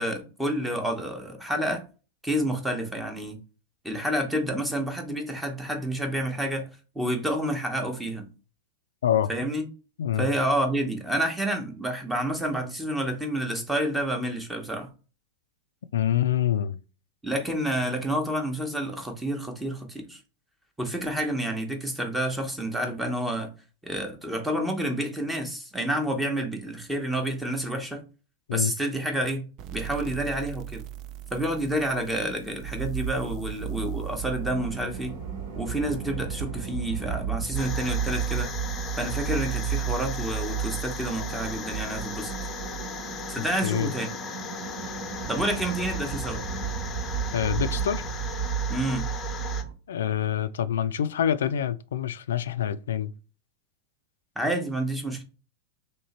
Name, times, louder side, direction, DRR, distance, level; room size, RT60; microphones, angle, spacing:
voice 1, 0.0-1.8 2.2-3.4 3.8-6.7 6.9-8.3 9.3-9.7 10.2-14.9 17.2-20.2 20.8-23.5 23.8-28.1 28.5-30.8 31.3-35.2 35.5-38.5 39.0-42.3 43.3-44.1 45.3-46.4 48.7-49.1 54.4-55.2, right 1 dB, 5° right, 0.8 m, -29 dB
voice 2, 15.9-16.8 28.5-28.7 43.6-43.9 47.3-48.1 49.9-53.1, left 10 dB, 90° left, 0.3 m, -26 dB
sound 1, 29.6-36.9, right 12 dB, 40° right, 0.3 m, -43 dB
sound 2, 32.6-49.7, right 8 dB, 65° right, 1.3 m, -33 dB
sound 3, 37.5-49.6, left 6 dB, 25° left, 0.6 m, -38 dB
3.0 x 2.8 x 4.1 m
supercardioid pair, 140°, 0 cm